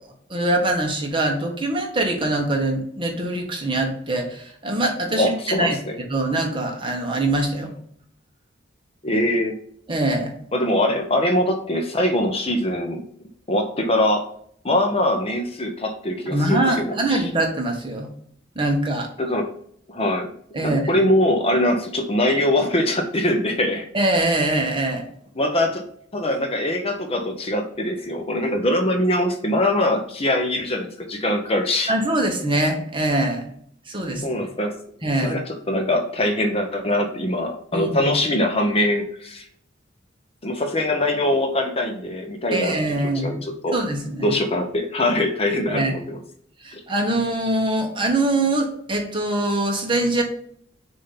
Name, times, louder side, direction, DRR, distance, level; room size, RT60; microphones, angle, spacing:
voice 1, 0.3-5.8 6.1-7.7 9.9-10.3 16.3-18.1 18.5-19.1 20.5-20.8 23.9-25.0 31.9-33.5 33.9-34.4 35.0-35.4 37.7-38.1 42.5-43.4 43.7-44.4 45.7-45.9 46.6-50.2, right 1 dB, 25° right, 2 dB, 1.2 m, -23 dB
voice 2, 5.2-6.0 9.0-9.5 10.5-13.0 13.5-14.2 14.6-17.3 19.2-19.5 19.9-20.3 20.6-23.9 25.4-25.8 26.1-31.9 34.2-34.7 35.2-39.5 40.4-43.8 44.2-46.2, left 1 dB, 30° left, 5 dB, 0.7 m, -22 dB
6.7 x 2.7 x 5.6 m, 0.64 s
head